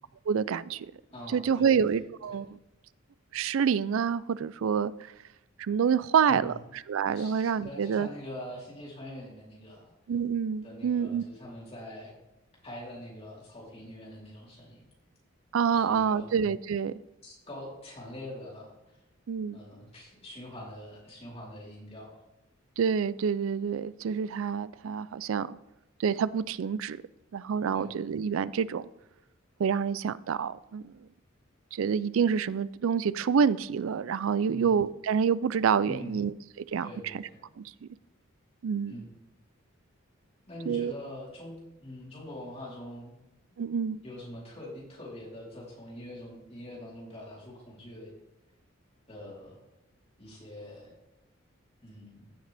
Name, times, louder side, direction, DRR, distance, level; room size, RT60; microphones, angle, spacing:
voice 1, 0.3-0.9 1.3-2.6 3.3-4.9 5.6-6.5 6.9-8.1 10.1-11.2 15.5-16.9 19.3-19.6 22.8-25.6 26.0-27.0 27.3-28.9 29.6-30.9 31.7-36.3 36.7-37.2 37.6-37.9 38.6-39.0 40.7-40.9 43.6-44.0, right 7 dB, 75° right, 0.4 m, -27 dB
voice 2, 1.1-1.8 2.3-2.4 6.3-6.6 7.1-9.9 10.6-12.1 12.6-14.9 15.7-16.3 17.2-19.0 19.5-22.2 27.7-27.9 34.5-34.7 35.8-36.3 36.8-37.4 38.9-39.1 40.5-43.2 44.0-48.1 49.1-49.6 50.2-51.0 51.8-52.3, left 1 dB, 30° left, 3.7 m, -44 dB
15.5 x 6.5 x 3.4 m
head